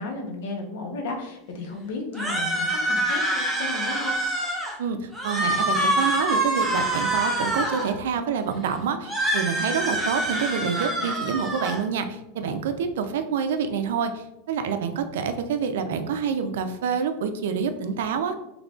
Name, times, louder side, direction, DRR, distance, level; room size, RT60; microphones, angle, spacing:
voice 1, 0.0-4.2, left 3 dB, 70° left, 2 dB, 0.8 m, -34 dB
sound 1, 2.1-4.8 5.1-7.9 9.0-11.8, right 1 dB, ahead, 0.6 m, -26 dB
voice 2, 4.8-18.3, right 6 dB, 90° right, 8 dB, 0.4 m, -27 dB
3.7 x 3.2 x 2.4 m, 0.92 s
supercardioid pair, 160°, 0 cm